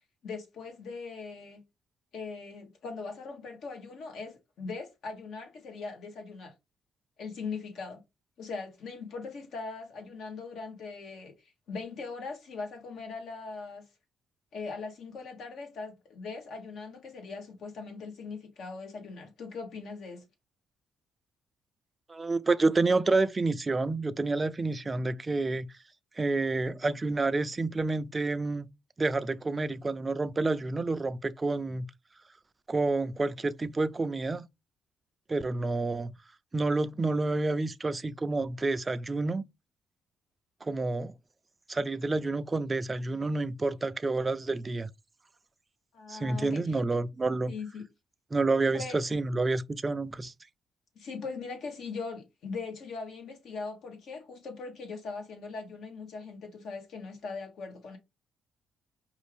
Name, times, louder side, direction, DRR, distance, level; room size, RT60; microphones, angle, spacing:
voice 1, 0.2-1.6 2.1-6.5 7.2-8.0 8.4-13.9 14.5-20.2 45.9-46.8 47.5-47.8 48.7-49.0 50.9-58.0, left 4 dB, 70° left, 1.4 m, -40 dB
voice 2, 22.1-25.7 26.2-28.7 29.0-31.9 32.7-34.5 35.3-36.1 36.5-39.4 40.6-41.1 41.7-44.9 46.1-47.5 48.3-50.3, right 3 dB, 25° right, 0.4 m, -29 dB
5.2 x 2.5 x 3.3 m
cardioid pair, 90°, 0 cm